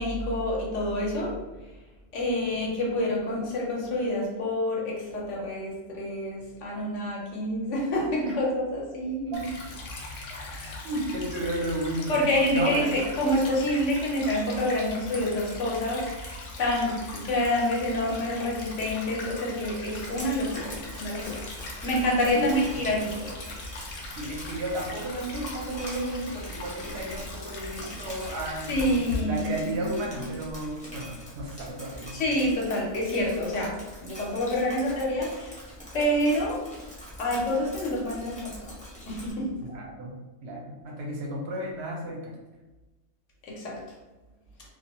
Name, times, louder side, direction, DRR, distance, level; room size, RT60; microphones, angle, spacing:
voice 1, 0.0-1.4 2.1-9.5 10.3-10.9 12.1-21.5 21.8-23.3 28.7-30.1 32.1-35.6 35.9-36.6 37.2-38.6 39.1-39.5 43.4-43.8, left 1 dB, 75° left, -3 dB, 1.0 m, -28 dB
Stream / Trickle dribble, 9.3-29.2, left 2 dB, 60° left, 0.6 m, -40 dB
voice 2, 10.8-12.2 12.5-13.2 22.3-22.8 24.2-32.2 39.6-42.3, right 1 dB, 65° right, -1 dB, 0.8 m, -33 dB
Drip, 19.9-39.3, equal, 10° left, 0.5 m, -44 dB
2.5 x 2.2 x 2.8 m, 1.1 s
omnidirectional pair, 1.3 m